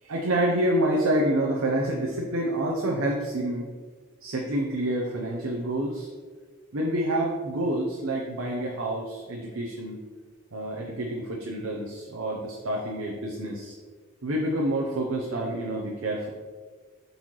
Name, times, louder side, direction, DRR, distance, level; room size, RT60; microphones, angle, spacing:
voice 1, 0.0-3.7 4.2-6.1 6.7-10.0 10.5-13.7 14.2-16.3, right 1 dB, 75° right, -2 dB, 0.7 m, -28 dB
7.7 x 4.1 x 3.1 m, 1.5 s
head